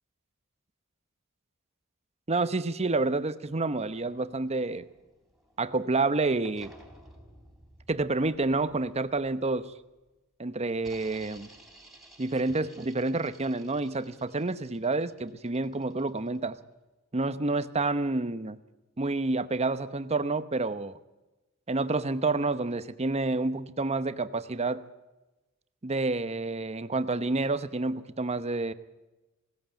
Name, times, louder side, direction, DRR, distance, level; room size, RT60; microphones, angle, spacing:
voice 1, 2.3-4.9 5.6-6.7 7.9-9.7 10.4-11.5 12.2-16.6 17.1-18.6 19.0-21.0 21.7-24.8 25.8-28.7, right 3 dB, 30° right, 13 dB, 0.9 m, -29 dB
sound 1, 3.7-6.0 6.4-10.1 10.8-16.6, right 1 dB, ahead, 3.5 m, -55 dB
20.0 x 17.0 x 9.0 m, 1.1 s
head